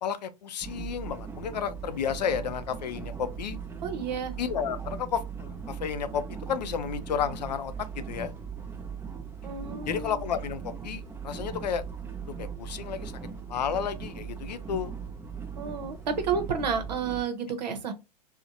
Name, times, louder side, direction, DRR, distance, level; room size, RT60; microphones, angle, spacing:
voice 1, 0.0-3.6 4.4-8.3 9.8-11.8 12.4-13.1 13.5-14.9, left 7 dB, 85° left, 0.4 m, -32 dB
sound 1, 0.6-17.2, right 6 dB, 10° right, 0.5 m, -39 dB
voice 2, 3.8-4.3 9.4-10.3 15.6-17.9, right 6 dB, 80° right, 0.7 m, -31 dB
2.7 x 2.1 x 2.4 m
hypercardioid pair, 115°, 21 cm